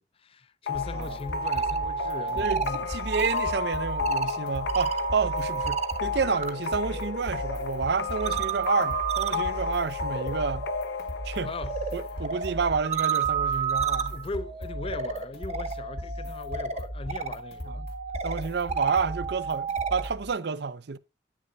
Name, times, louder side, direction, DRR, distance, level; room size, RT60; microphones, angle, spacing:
voice 1, 0.0-2.9 11.4-11.8 12.1-12.3 14.1-17.8, left 3 dB, 35° left, 0.5 m, -39 dB
sound 1, 0.7-14.2, left 6 dB, 85° left, 0.8 m, -34 dB
sound 2, 0.7-20.3, equal, 60° left, 2.4 m, -38 dB
sound 3, 1.3-6.5 6.8-20.1, right 6 dB, 40° right, 1.0 m, -32 dB
voice 2, 2.4-10.7 11.2-11.5 11.9-14.1 17.6-17.9 18.2-21.0, right 5 dB, 65° right, 0.6 m, -29 dB
9.8 x 8.9 x 2.6 m
head